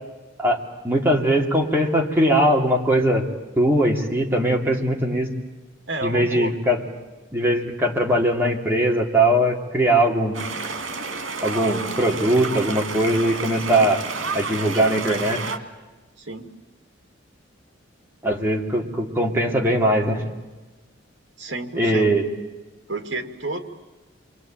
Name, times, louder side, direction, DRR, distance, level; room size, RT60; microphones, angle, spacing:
voice 1, 0.8-3.3 3.6-5.3 6.0-6.8 7.3-10.4 11.4-14.0 14.3-15.4 18.2-20.2 21.8-22.3, right 1 dB, 10° right, -1 dB, 2.7 m, -20 dB
voice 2, 5.9-6.5 16.2-16.5 21.4-22.1 22.9-23.6, right 2 dB, 65° right, 5 dB, 2.4 m, -30 dB
sound 1, 10.3-15.6, right 4 dB, 80° right, 2.3 m, -30 dB
28.0 x 23.5 x 9.0 m, 1.2 s
head